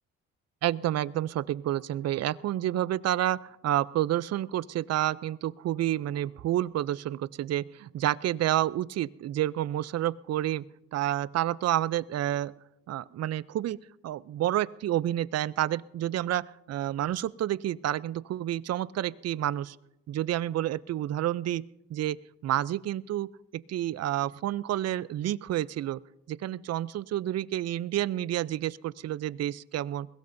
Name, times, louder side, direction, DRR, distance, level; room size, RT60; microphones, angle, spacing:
voice 1, 0.6-10.6 10.9-12.5 12.9-13.8 14.0-19.8 20.1-21.6 21.9-22.2 22.4-26.0 26.3-30.1, right 13 dB, 55° right, 19 dB, 0.5 m, -29 dB
21.5 x 17.0 x 2.7 m, 0.89 s
cardioid pair, 90°, 30 cm